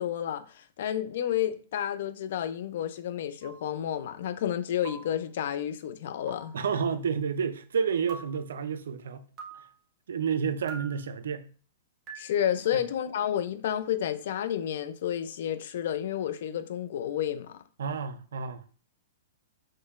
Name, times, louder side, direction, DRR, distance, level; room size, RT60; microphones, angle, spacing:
voice 1, 0.0-6.5 12.2-17.6, left 10 dB, 65° left, 0.4 m, -31 dB
sound 1, 3.4-3.6 4.8-5.2 6.3-6.6 8.1-8.4 9.4-9.7 10.7-11.0 12.1-12.4, right 4 dB, 35° right, 1.2 m, -43 dB
voice 2, 6.5-9.3 10.1-11.5 17.8-18.6, right 6 dB, 80° right, 0.4 m, -30 dB
4.3 x 3.0 x 2.4 m
hypercardioid pair, 130°, 0 cm